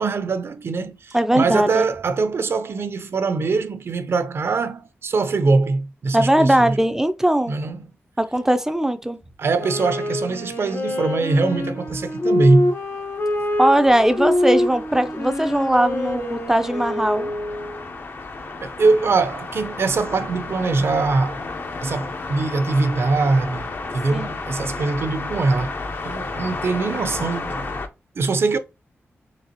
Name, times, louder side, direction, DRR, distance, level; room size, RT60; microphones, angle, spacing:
voice 1, 0.0-6.8 7.5-7.9 9.4-12.7 18.6-21.4 21.8-25.8 26.0-27.8 28.2-28.6, right 3 dB, 60° right, 0.6 m, -22 dB
voice 2, 1.1-1.8 6.1-7.5 8.2-9.2 13.6-17.3 24.1-24.4, right 1 dB, 10° right, 0.4 m, -19 dB
Wind instrument woodwind instrument, 9.5-17.9, left 1 dB, 70° left, 1.2 m, -25 dB
sound 1, 12.1-27.9, left 3 dB, 50° left, 0.7 m, -33 dB
4.0 x 3.3 x 2.8 m
wide cardioid pair, 130°, 5 cm